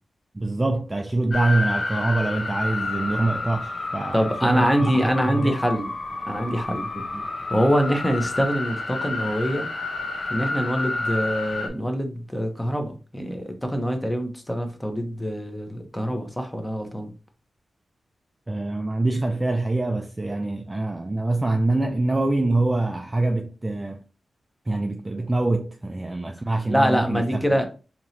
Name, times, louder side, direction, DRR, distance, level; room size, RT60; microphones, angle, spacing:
voice 1, 0.3-5.6 7.0-7.3 18.5-24.0 24.7-27.6, right 2 dB, 20° right, 0.3 m, -25 dB
sound 1, 1.3-11.7, left 2 dB, 40° left, 0.8 m, -30 dB
voice 2, 4.1-5.9 6.3-6.9 7.5-9.7 10.3-17.1 26.7-27.6, equal, 5° left, 0.8 m, -24 dB
4.6 x 2.9 x 2.7 m
wide cardioid pair, 125°, 0 cm